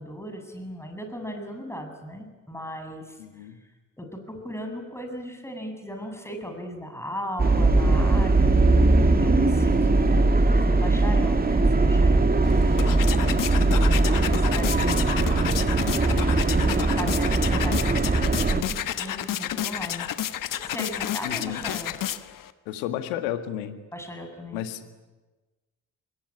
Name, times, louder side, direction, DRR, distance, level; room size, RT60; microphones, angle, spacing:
voice 1, 0.0-3.5 4.0-8.6 9.2-15.0 16.0-20.1 20.6-21.9 23.9-24.6, equal, 5° left, 5 dB, 7.7 m, -37 dB
voice 2, 3.2-3.6 21.2-21.6 22.7-23.8 24.5-25.0, left 11 dB, 70° left, 9 dB, 1.9 m, -32 dB
sound 1, 7.4-18.6, right 2 dB, 20° right, 2.5 m, -20 dB
sound 2, 12.4-22.5, left 12 dB, 50° left, 1.3 m, -31 dB
27.0 x 21.0 x 9.8 m, 1.2 s
figure-of-eight pair, 45°, 41 cm